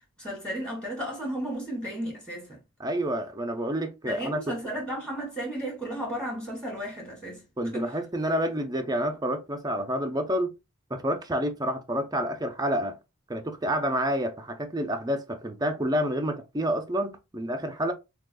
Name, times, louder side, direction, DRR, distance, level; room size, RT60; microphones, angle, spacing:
voice 1, 0.2-2.6 4.0-7.5 7.7-7.9, right 1 dB, 5° left, 1.8 m, -34 dB
voice 2, 2.8-4.5 7.6-10.6 10.9-13.0 13.3-17.9, equal, 15° right, 0.5 m, -29 dB
6.2 x 2.4 x 2.3 m
head